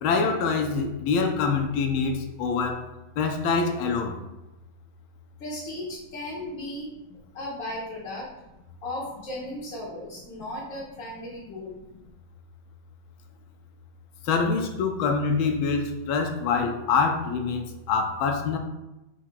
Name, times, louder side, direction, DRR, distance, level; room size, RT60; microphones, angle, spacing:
voice 1, 0.0-2.8 3.2-4.1 14.3-18.6, left 5 dB, 80° left, 4 dB, 1.3 m, -25 dB
voice 2, 5.4-6.9 7.3-8.3 8.8-11.8, left 1 dB, 55° left, -6 dB, 0.9 m, -36 dB
4.7 x 2.1 x 4.5 m, 0.96 s
omnidirectional pair, 2.2 m